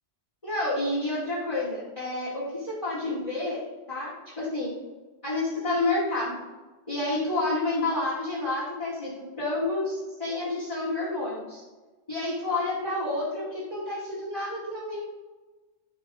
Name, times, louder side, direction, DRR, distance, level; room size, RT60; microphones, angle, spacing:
voice 1, 0.4-3.6 3.9-4.8 5.2-6.5 6.9-11.6 12.1-15.0, left 2 dB, 30° left, -10 dB, 2.3 m, -29 dB
11.0 x 7.0 x 2.5 m, 1.2 s
omnidirectional pair, 1.2 m